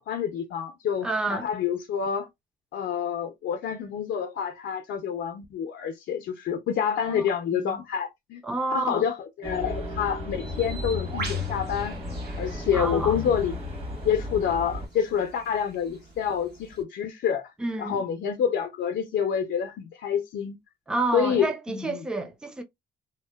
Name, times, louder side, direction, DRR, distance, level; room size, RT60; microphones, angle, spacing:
voice 1, 0.1-2.3 2.7-8.4 8.7-12.0 12.4-13.5 14.0-17.5 17.8-20.6 21.1-22.0, left 8 dB, 65° left, 0.5 m, -28 dB
voice 2, 1.0-1.5 7.1-7.3 7.5-7.8 8.4-9.0 12.7-13.2 17.6-18.0 20.9-22.6, right 3 dB, 5° right, 0.4 m, -29 dB
sound 1, 9.4-14.9, left 3 dB, 30° right, 1.2 m, -33 dB
Bird, 10.4-16.8, right 4 dB, 55° right, 1.0 m, -44 dB
2.8 x 2.1 x 2.2 m
cardioid pair, 90°, 20 cm